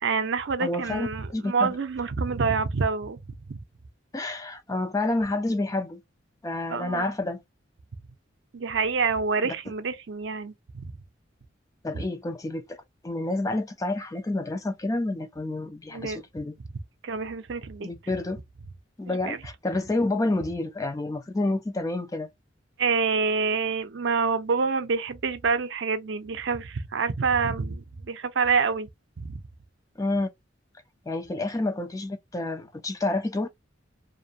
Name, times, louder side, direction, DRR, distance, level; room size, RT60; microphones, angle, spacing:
voice 1, 0.0-3.2 3.5-3.6 6.7-7.1 8.5-10.9 11.9-12.0 15.9-16.2 17.0-17.9 19.1-19.4 22.8-28.9 29.2-29.4, right 5 dB, 60° right, 0.5 m, -27 dB
voice 2, 0.6-1.8 4.1-6.0 6.4-7.4 9.4-9.5 11.8-12.8 13.0-16.6 17.8-18.4 19.0-22.3 30.0-30.3 31.1-33.5, left 2 dB, 15° left, 0.3 m, -29 dB
2.6 x 2.1 x 2.6 m
head